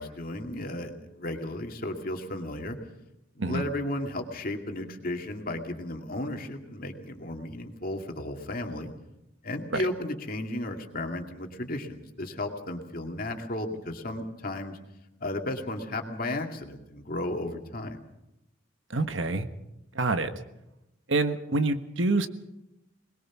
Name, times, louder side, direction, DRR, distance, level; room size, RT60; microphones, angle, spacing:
voice 1, 0.0-2.8 3.4-8.9 9.4-14.8 15.2-18.0, left 1 dB, 45° left, 4 dB, 2.4 m, -34 dB
voice 2, 18.9-19.5 19.9-20.3 21.1-22.3, right 3 dB, 70° right, 9 dB, 1.4 m, -26 dB
22.5 x 20.5 x 6.1 m, 0.89 s
head